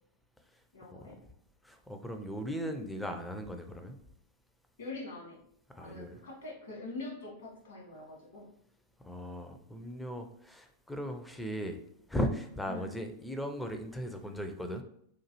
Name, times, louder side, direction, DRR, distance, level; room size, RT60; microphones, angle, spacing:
voice 1, 0.7-1.2 4.8-5.4 5.8-8.4 12.7-12.9, left 3 dB, 65° left, -3 dB, 1.4 m, -44 dB
voice 2, 1.6-4.0 5.7-6.2 9.0-11.8 12.1-14.8, equal, 5° left, 5 dB, 0.4 m, -37 dB
3.0 x 2.2 x 3.0 m, 0.70 s
figure-of-eight pair, 90°, 0 cm